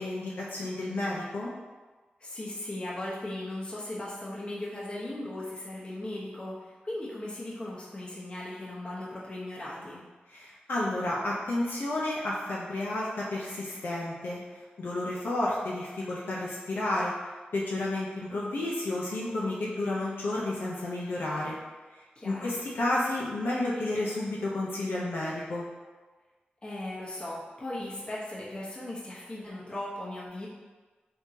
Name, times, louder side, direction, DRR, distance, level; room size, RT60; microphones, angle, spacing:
voice 1, 0.0-1.5 10.3-14.4 14.8-17.1 17.5-21.6 22.2-25.7, left 1 dB, 75° left, -5 dB, 0.6 m, -31 dB
voice 2, 2.2-10.0 22.2-22.5 26.6-30.5, left 1 dB, 30° left, -7 dB, 0.9 m, -38 dB
3.6 x 2.8 x 2.8 m, 1.3 s
wide cardioid pair, 85°, 3 cm